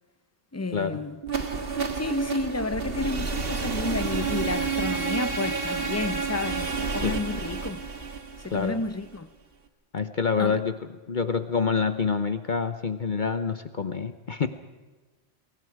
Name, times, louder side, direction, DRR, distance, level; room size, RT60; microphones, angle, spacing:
voice 1, 0.5-1.2 1.9-7.8 8.4-9.3 10.4-10.6, left 3 dB, 15° left, 0.7 m, -31 dB
sound 1, 1.2-9.2, right 5 dB, 60° right, 1.9 m, -30 dB
voice 2, 9.9-10.7 11.1-14.5, left 5 dB, 50° left, 1.0 m, -27 dB
28.5 x 22.5 x 4.8 m
omnidirectional pair, 1.1 m